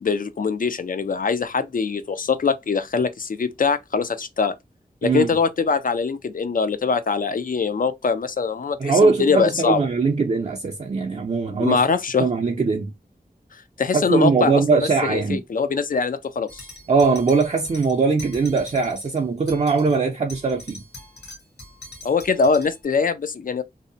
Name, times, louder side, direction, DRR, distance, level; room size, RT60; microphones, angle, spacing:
voice 1, 0.0-4.5 5.0-9.9 11.6-12.3 13.8-14.6 15.0-16.7 22.0-23.6, left 5 dB, 55° left, 0.4 m, -22 dB
voice 2, 5.0-5.3 8.8-11.8 12.2-12.9 13.9-15.4 16.9-20.8, right 4 dB, 45° right, 0.4 m, -21 dB
sound 1, 16.5-19.2 19.5-20.0 20.3-22.8, left 1 dB, 85° left, 0.8 m, -42 dB
2.7 x 2.0 x 2.5 m
wide cardioid pair, 60°, 17 cm